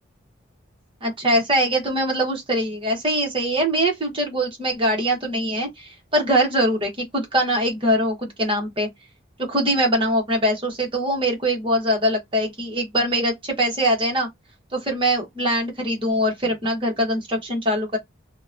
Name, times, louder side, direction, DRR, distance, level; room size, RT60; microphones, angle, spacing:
voice 1, 1.0-8.9 9.5-14.3 14.7-18.0, equal, 25° right, 0.9 m, -22 dB
2.8 x 2.1 x 2.4 m
head